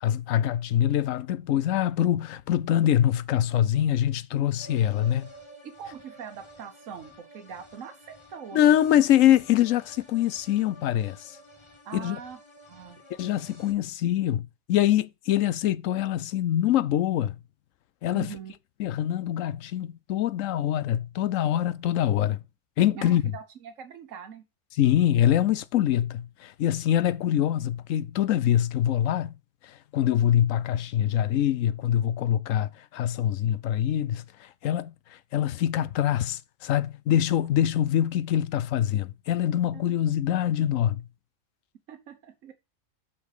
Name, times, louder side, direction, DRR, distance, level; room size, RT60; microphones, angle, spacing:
voice 1, 0.0-5.3 8.5-11.3 11.9-12.2 13.2-17.4 18.0-18.3 18.8-22.4 22.8-23.3 24.7-29.4 29.6-41.0, left 11 dB, 85° left, 1.0 m, -24 dB
sound 1, 4.5-13.7, equal, 25° left, 1.3 m, -51 dB
voice 2, 5.6-8.6 8.9-9.0 11.8-12.4 12.7-13.0 18.1-18.5 22.9-24.4 39.7-39.9 41.9-42.5, right 7 dB, 80° right, 1.3 m, -42 dB
5.8 x 5.8 x 6.6 m
omnidirectional pair, 1.3 m